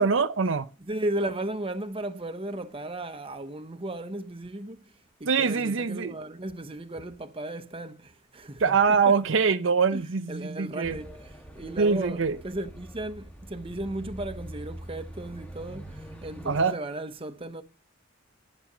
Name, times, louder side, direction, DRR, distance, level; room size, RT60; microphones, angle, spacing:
voice 1, 0.0-0.7 5.3-6.1 8.6-11.0 11.8-12.3 16.5-16.7, right 5 dB, 65° right, 0.6 m, -23 dB
voice 2, 0.8-4.8 5.2-9.1 9.9-17.6, right 1 dB, 25° right, 0.9 m, -35 dB
sound 1, 10.8-16.7, right 1 dB, 5° left, 1.4 m, -43 dB
11.5 x 8.6 x 6.1 m
head